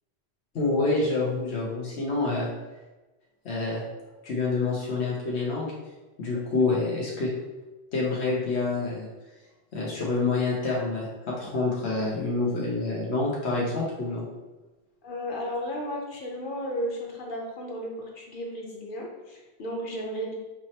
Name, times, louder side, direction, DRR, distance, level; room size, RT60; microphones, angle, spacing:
voice 1, 0.5-2.5 3.4-3.8 4.2-5.7 6.2-7.3 7.9-9.1 9.7-14.2, left 3 dB, 85° left, -4 dB, 1.2 m, -27 dB
voice 2, 15.0-20.3, equal, 55° left, -1 dB, 1.1 m, -34 dB
6.0 x 3.1 x 2.9 m, 1.1 s
omnidirectional pair, 1.1 m